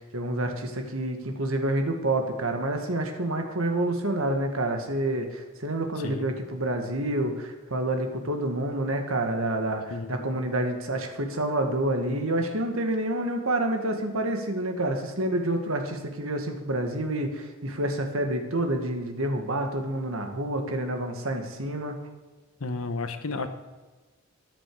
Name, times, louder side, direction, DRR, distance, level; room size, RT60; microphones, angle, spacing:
voice 1, 0.0-22.0, right 1 dB, 75° right, 4 dB, 1.9 m, -28 dB
voice 2, 6.0-6.3 9.9-10.4 22.6-23.5, left 3 dB, 80° left, 9 dB, 1.1 m, -33 dB
13.5 x 10.5 x 4.8 m, 1.3 s
head